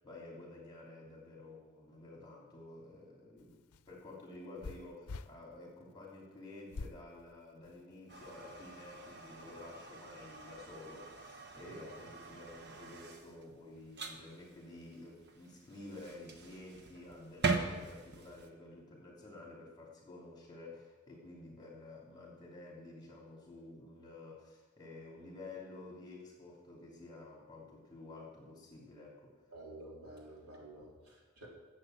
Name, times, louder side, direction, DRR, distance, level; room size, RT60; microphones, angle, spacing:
voice 1, 0.0-3.6 3.9-29.3, left 2 dB, 20° left, -3 dB, 3.0 m, -51 dB
sound 1, 3.4-5.3 6.7-7.0 7.6-8.3, left 3 dB, 90° left, 0.5 m, -45 dB
sound 2, 8.1-18.5, right 4 dB, 50° right, 1.1 m, -42 dB
voice 2, 29.5-31.5, right 1 dB, 80° right, -3 dB, 3.9 m, -51 dB
12.0 x 7.9 x 7.7 m, 1.2 s
head